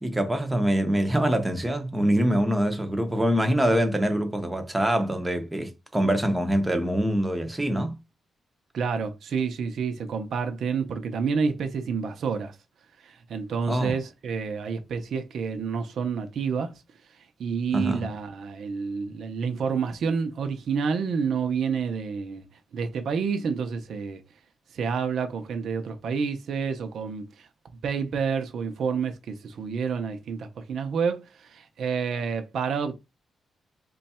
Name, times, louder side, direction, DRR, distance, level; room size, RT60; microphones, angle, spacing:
voice 1, 0.0-8.0 13.7-13.9 17.7-18.1, right 1 dB, 10° right, 0.6 m, -24 dB
voice 2, 8.7-12.5 13.0-16.8 17.4-22.4 22.7-24.2 24.7-27.5 27.8-32.9, right 6 dB, 60° right, 0.6 m, -29 dB
3.1 x 2.3 x 4.2 m
wide cardioid pair, 160°, 0 cm